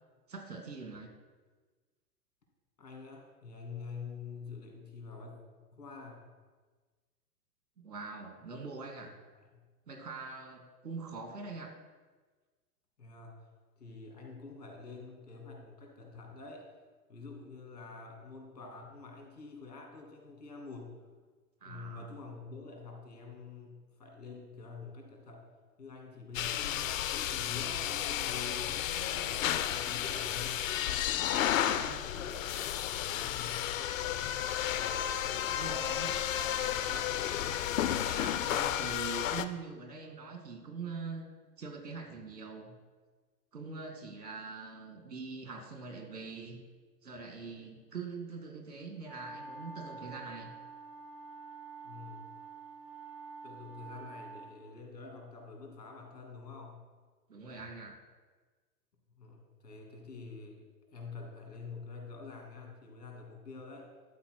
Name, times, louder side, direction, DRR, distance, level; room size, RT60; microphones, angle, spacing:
voice 1, 0.3-1.1 7.8-9.1 9.9-11.7 21.6-22.1 31.2-32.0 35.5-36.1 38.0-41.3 41.6-42.8 43.5-46.6 47.0-50.5 57.3-58.0, right 4 dB, 80° right, 4 dB, 2.0 m, -43 dB
voice 2, 2.8-5.4 5.7-6.2 9.0-9.1 9.5-9.6 13.0-13.4 13.8-16.7 17.1-21.0 21.6-25.5 25.8-32.4 33.2-33.8 35.2-37.2 51.8-52.3 53.4-56.8 59.2-63.9, left 4 dB, 85° left, 1 dB, 2.8 m, -47 dB
sound 1, 26.3-39.4, left 11 dB, 55° left, 0.6 m, -32 dB
sound 2, 49.0-54.5, right 4 dB, 5° right, 0.3 m, -47 dB
12.0 x 4.3 x 6.3 m, 1.4 s
figure-of-eight pair, 105°, 48 cm